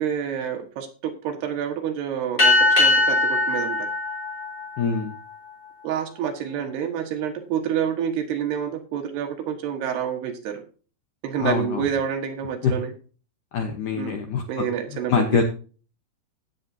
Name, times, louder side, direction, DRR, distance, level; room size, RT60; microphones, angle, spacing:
voice 1, 0.0-3.9 5.8-10.6 11.2-12.9 13.9-14.1 14.5-15.2, right 8 dB, 70° right, 5 dB, 3.3 m, -28 dB
sound 1, 2.4-5.3, left 2 dB, 25° left, 4.2 m, -21 dB
voice 2, 4.8-5.1 11.4-11.9 12.6-12.7 13.5-14.7 15.1-15.4, left 6 dB, 70° left, 4 dB, 1.9 m, -24 dB
16.0 x 7.9 x 2.8 m, 0.37 s
omnidirectional pair, 5.0 m